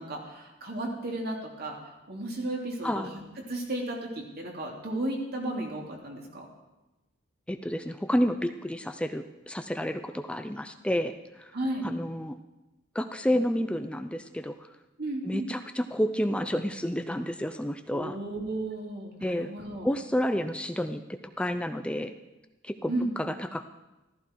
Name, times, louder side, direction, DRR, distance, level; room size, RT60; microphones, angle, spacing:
voice 1, 0.0-3.0 3.5-6.4 11.5-11.9 15.0-15.5 17.9-19.9 22.9-23.1, right 1 dB, 55° right, 0 dB, 3.1 m, -34 dB
voice 2, 7.5-11.5 11.8-12.4 12.9-14.7 15.2-18.2 19.2-19.5 19.8-21.0 21.4-22.1 22.6-23.6, equal, 5° left, 8 dB, 0.5 m, -30 dB
14.5 x 14.5 x 4.6 m, 1.0 s
head